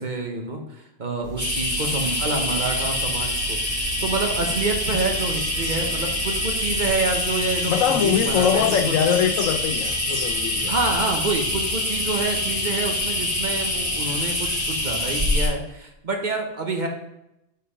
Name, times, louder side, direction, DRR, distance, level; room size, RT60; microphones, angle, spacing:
voice 1, 0.0-8.7 9.1-9.2 10.7-16.9, right 3 dB, 40° right, 1.0 m, -28 dB
sound 1, 1.2-7.2, right 7 dB, 55° right, 1.2 m, -37 dB
sound 2, 1.4-15.5, left 1 dB, 15° right, 2.0 m, -25 dB
voice 2, 7.7-10.7, left 8 dB, 80° left, 1.1 m, -22 dB
7.4 x 4.6 x 4.9 m
omnidirectional pair, 1.3 m